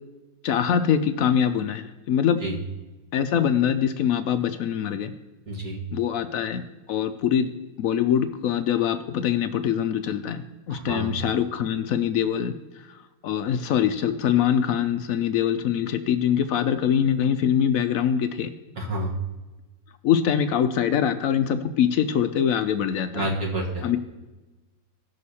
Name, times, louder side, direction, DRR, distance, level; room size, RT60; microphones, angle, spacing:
voice 1, 0.4-2.4 3.1-5.1 5.9-6.6 6.9-7.5 7.8-12.5 13.2-18.5 20.0-23.3 23.8-24.0, left 9 dB, 70° left, 9 dB, 0.8 m, -23 dB
voice 2, 5.5-5.8 10.7-11.1 18.8-19.1 23.1-23.8, right 1 dB, 50° right, -4 dB, 2.4 m, -29 dB
16.5 x 6.6 x 4.2 m, 1.2 s
omnidirectional pair, 2.0 m